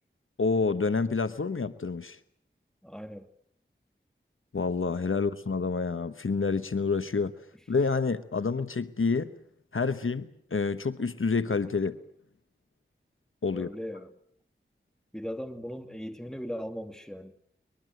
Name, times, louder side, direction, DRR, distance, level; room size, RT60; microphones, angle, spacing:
voice 1, 0.4-2.2 4.5-7.3 7.7-9.3 9.7-12.0 13.4-13.7, left 4 dB, 85° left, 1.1 m, -28 dB
voice 2, 2.8-3.3 13.5-14.1 15.1-17.3, equal, 5° left, 2.5 m, -38 dB
23.5 x 21.5 x 7.8 m
wide cardioid pair, 50°, 20 cm